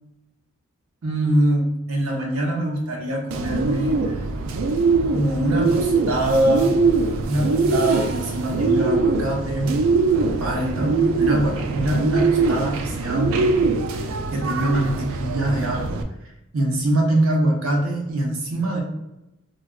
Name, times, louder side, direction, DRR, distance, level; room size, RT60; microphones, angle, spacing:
voice 1, 1.0-4.2 5.1-6.8 7.2-9.8 10.2-13.4 13.9-16.0 16.5-18.8, right 1 dB, 85° right, 0 dB, 0.7 m, -23 dB
Bird, 3.3-16.0, right 4 dB, 70° right, 0.3 m, -22 dB
3.5 x 2.2 x 2.3 m, 0.92 s
head